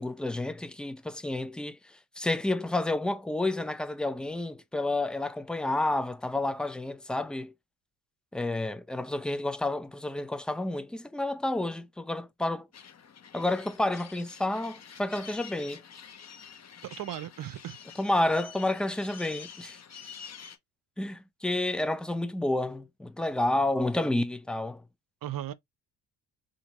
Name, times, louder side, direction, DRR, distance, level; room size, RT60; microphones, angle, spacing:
voice 1, 0.0-1.8 2.2-7.5 8.3-12.7 13.3-15.8 18.0-19.8 21.0-24.8, left 2 dB, ahead, 0.4 m, -30 dB
sound 1, 12.7-20.6, left 7 dB, 35° left, 0.9 m, -48 dB
voice 2, 16.8-17.8 25.2-25.5, right 12 dB, 45° right, 0.7 m, -36 dB
3.7 x 2.7 x 2.9 m
hypercardioid pair, 60°, 46 cm